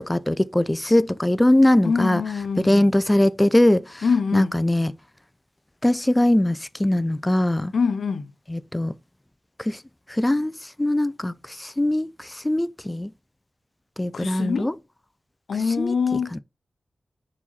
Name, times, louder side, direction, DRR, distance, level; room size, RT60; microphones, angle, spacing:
voice 1, 0.0-2.2 2.6-4.0 4.3-4.9 5.8-7.7 8.5-8.9 9.6-9.8 10.1-13.1 14.0-14.7 15.8-15.9 16.3-16.4, left 1 dB, 15° left, 0.4 m, -21 dB
voice 2, 1.8-2.9 4.0-4.5 7.7-8.3 14.1-14.7 15.5-16.3, left 5 dB, 80° left, 0.7 m, -24 dB
4.8 x 4.2 x 5.6 m
cardioid pair, 70°, 0 cm